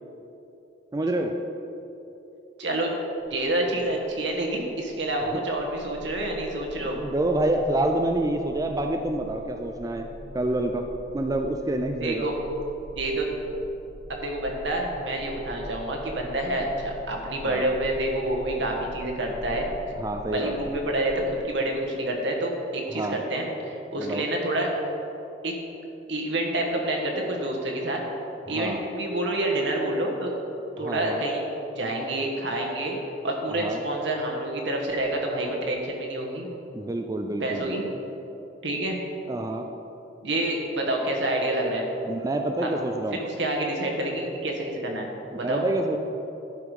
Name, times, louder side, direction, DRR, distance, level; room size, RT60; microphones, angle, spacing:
voice 1, 0.9-1.3 5.3-5.4 6.9-10.1 10.3-10.8 11.1-12.3 17.4-17.7 20.0-20.6 22.9-23.2 24.0-24.2 28.5-28.8 30.8-31.2 33.5-33.8 36.7-38.0 39.3-39.7 42.0-43.2 45.4-46.0, right 1 dB, 20° right, 4 dB, 0.4 m, -27 dB
voice 2, 2.6-2.9 3.3-7.0 12.0-12.3 13.0-13.3 14.1-19.7 20.3-24.7 25.4-25.5 26.1-28.0 28.5-30.3 30.8-33.0 33.2-36.5 37.4-37.8 38.6-39.0 40.2-41.9 42.6-42.7 43.1-45.1 45.3-45.6, right 1 dB, 80° right, 0 dB, 1.4 m, -28 dB
sound 1, 3.2-21.4, equal, 40° left, 0.7 m, -44 dB
11.5 x 5.1 x 4.8 m, 3.0 s
head